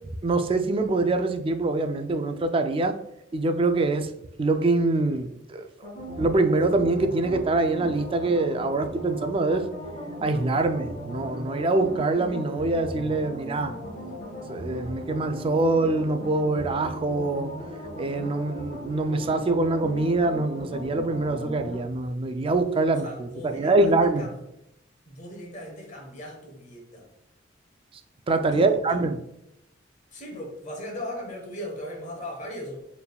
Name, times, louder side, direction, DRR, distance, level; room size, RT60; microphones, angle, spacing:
voice 1, 0.2-3.0 3.3-4.1 4.4-5.7 6.2-9.6 10.2-13.7 14.5-17.5 18.0-24.2 28.3-29.2, right 2 dB, 30° right, 7 dB, 0.3 m, -24 dB
sound 1, 5.8-21.8, equal, 55° left, 1.4 m, -37 dB
voice 2, 22.9-24.4 25.0-27.1 28.4-29.0 30.1-32.8, left 1 dB, 40° left, 0 dB, 1.1 m, -38 dB
4.6 x 3.4 x 2.2 m, 0.82 s
head